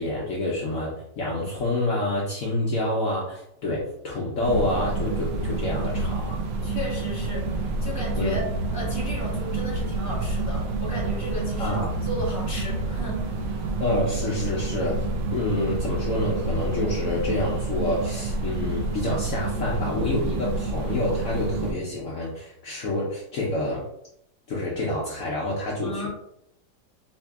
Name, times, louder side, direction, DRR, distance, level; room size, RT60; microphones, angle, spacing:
voice 1, 0.0-6.4 8.2-8.4 11.6-11.9 13.8-15.0 15.3-23.9 24.5-26.1, left 2 dB, 60° left, -4 dB, 0.9 m, -28 dB
sound 1, 4.4-21.7, right 2 dB, 80° right, 1.3 m, -28 dB
voice 2, 6.6-13.6 25.8-26.1, equal, 15° right, -6 dB, 0.8 m, -34 dB
4.9 x 2.7 x 2.3 m, 0.75 s
omnidirectional pair, 1.9 m